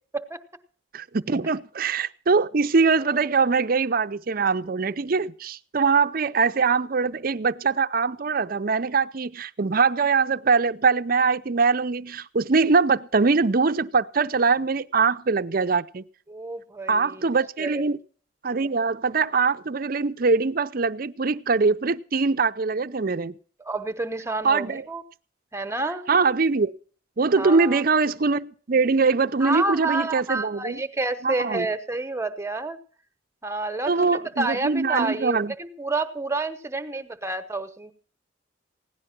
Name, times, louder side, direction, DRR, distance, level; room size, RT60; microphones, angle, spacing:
voice 1, 0.9-16.0 16.9-18.0 18.4-23.3 24.4-24.8 26.1-26.7 27.2-30.8 31.2-31.7 33.9-35.5, right 4 dB, 50° right, 0.6 m, -22 dB
voice 2, 16.3-17.3 17.6-17.8 23.6-25.0 25.5-26.0 27.4-27.8 29.4-32.8 33.4-37.9, right 2 dB, 15° right, 1.0 m, -29 dB
17.0 x 11.0 x 6.0 m
head